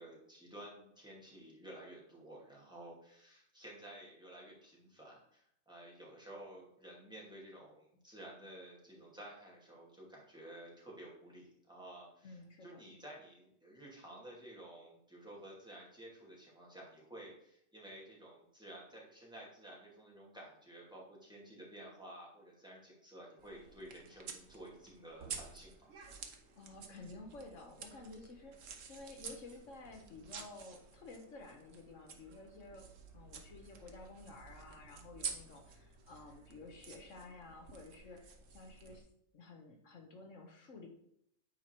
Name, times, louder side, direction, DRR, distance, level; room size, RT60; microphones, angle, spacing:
voice 1, 0.0-25.9, right 1 dB, 5° right, -4 dB, 2.5 m, -53 dB
voice 2, 12.2-12.8 26.6-32.9 33.1-39.1 39.3-40.9, left 3 dB, 75° left, 3 dB, 1.4 m, -52 dB
sound 1, 23.4-39.0, right 5 dB, 75° right, 1.3 m, -50 dB
9.3 x 4.6 x 4.5 m, 0.73 s
omnidirectional pair, 1.3 m